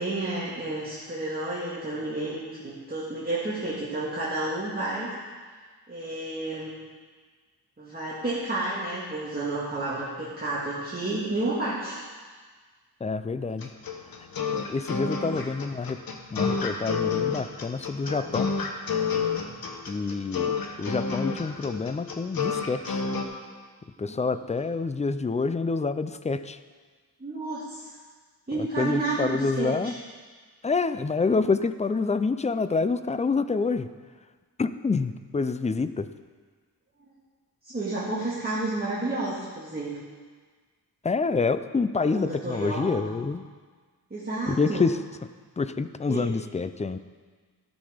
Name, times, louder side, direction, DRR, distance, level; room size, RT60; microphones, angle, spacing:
voice 1, 0.0-5.1 5.9-6.7 7.8-12.0 15.2-15.3 19.5-19.6 24.1-24.4 27.2-27.9 28.5-29.9 37.6-39.9 42.0-43.0 44.1-44.9 46.1-46.3, right 2 dB, 25° right, -8 dB, 1.8 m, -31 dB
voice 2, 13.0-13.7 14.5-16.0 16.3-18.5 19.9-23.0 24.0-26.6 28.5-29.9 30.6-33.9 34.6-36.1 41.0-43.5 44.5-45.0 45.6-47.0, left 4 dB, 20° left, 12 dB, 0.3 m, -27 dB
sound 1, 13.6-23.2, left 5 dB, 60° left, 1.0 m, -29 dB
14.0 x 6.1 x 5.0 m, 1.5 s
wide cardioid pair, 120°, 40 cm